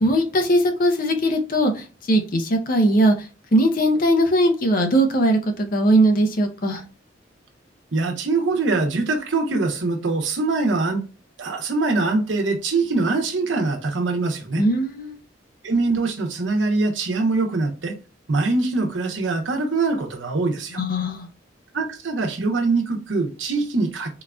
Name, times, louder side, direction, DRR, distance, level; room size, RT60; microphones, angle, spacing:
voice 1, 0.0-3.3 3.5-6.8 14.6-15.2 20.7-21.3, right 1 dB, 50° left, 0.6 m, -20 dB
voice 2, 7.9-11.0 11.4-14.6 15.6-18.0 18.3-20.8 21.7-24.2, right 3 dB, 90° right, 0.8 m, -23 dB
3.8 x 2.5 x 2.2 m
head